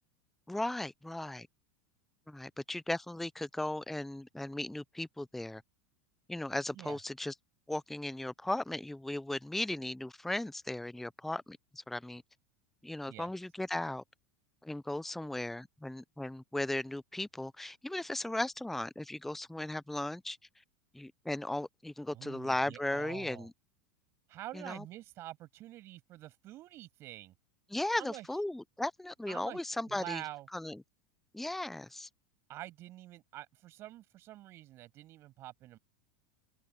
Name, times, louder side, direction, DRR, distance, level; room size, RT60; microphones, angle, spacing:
voice 1, 0.5-1.5 2.3-5.6 6.3-7.3 7.7-12.2 12.8-14.0 14.6-20.4 20.9-23.5 24.5-24.8 27.7-30.2 30.5-30.8 31.3-32.1, left 1 dB, 5° left, 0.6 m, -37 dB
voice 2, 22.1-23.5 24.3-27.3 28.0-28.3 29.3-29.6 29.9-30.5 32.5-35.8, right 15 dB, 45° right, 7.4 m, -47 dB
open air
hypercardioid pair, 95°, 6 cm